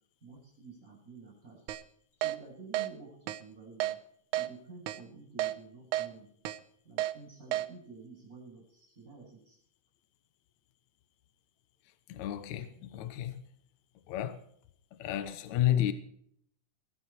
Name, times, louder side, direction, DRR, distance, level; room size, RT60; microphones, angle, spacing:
voice 1, 0.2-1.7 2.2-4.0 4.3-6.3 6.8-9.6, right 4 dB, 25° right, 8.2 m, -50 dB
Keyboard (musical), 1.7-1.8 2.2-2.4 2.7-2.9 3.3-3.4 3.8-3.9 4.3-4.5 4.9-5.0 5.4-5.5 5.9-6.1 6.5-6.6 7.0-7.1 7.5-7.7, right 14 dB, 75° right, 2.2 m, -31 dB
voice 2, 12.1-13.4 14.1-14.4 14.9-15.9, left 12 dB, 70° left, 2.3 m, -31 dB
23.5 x 10.0 x 4.4 m
omnidirectional pair, 3.7 m